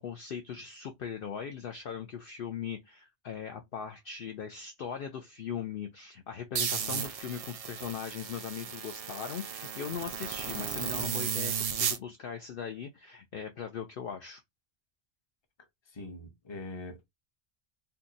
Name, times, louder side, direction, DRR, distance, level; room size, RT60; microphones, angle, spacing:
voice 1, 0.0-14.4, left 7 dB, 60° left, 0.7 m, -39 dB
sound 1, 6.6-12.0, right 7 dB, 75° right, 0.3 m, -34 dB
voice 2, 15.9-17.1, left 2 dB, 25° left, 0.8 m, -42 dB
2.8 x 2.2 x 3.8 m
omnidirectional pair, 1.2 m